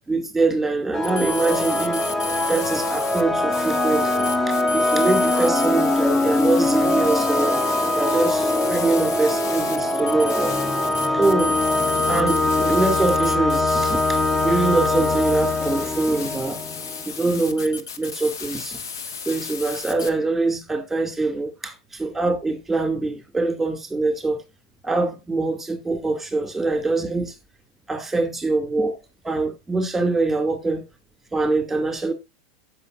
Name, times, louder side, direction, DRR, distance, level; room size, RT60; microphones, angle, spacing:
voice 1, 0.1-2.1 2.5-7.6 7.9-10.5 11.1-11.6 12.1-16.6 17.0-18.8 19.3-24.4 24.8-27.3 27.9-28.9 29.2-30.9 31.3-32.1, right 3 dB, 5° right, 2.5 m, -24 dB
sound 1, 0.9-17.3, left 2 dB, 15° left, 1.0 m, -22 dB
sound 2, 1.0-3.2 3.5-20.1, left 5 dB, 80° left, 1.2 m, -34 dB
15.5 x 5.7 x 2.6 m
hypercardioid pair, 95°, 2 cm